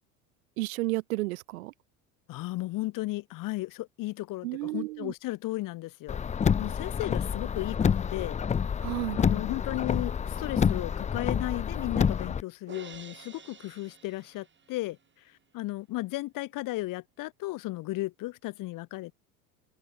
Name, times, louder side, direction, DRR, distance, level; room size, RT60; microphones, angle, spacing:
voice 1, 0.6-1.7 4.4-5.1 8.8-9.2, right 20 dB, 70° right, 1.3 m, -32 dB
voice 2, 2.3-8.4 9.2-15.0 15.5-19.1, left 18 dB, 45° left, 1.6 m, -35 dB
Car, 6.1-12.4, left 7 dB, 15° left, 0.6 m, -28 dB
Crash cymbal, 12.7-15.0, right 6 dB, 25° right, 5.4 m, -50 dB
hypercardioid pair, 85°, 44 cm